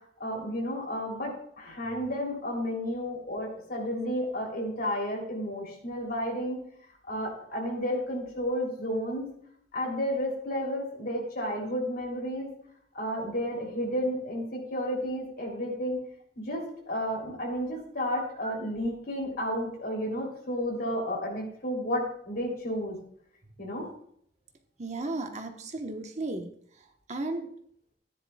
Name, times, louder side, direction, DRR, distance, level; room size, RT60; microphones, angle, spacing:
voice 1, 0.2-6.6 7.1-9.3 9.7-12.5 12.9-16.0 16.4-23.0 23.6-23.9, equal, 55° left, -1 dB, 3.3 m, -32 dB
voice 2, 24.8-26.5 27.1-27.5, right 2 dB, 40° right, 5 dB, 1.1 m, -34 dB
14.0 x 10.5 x 2.4 m, 0.67 s
head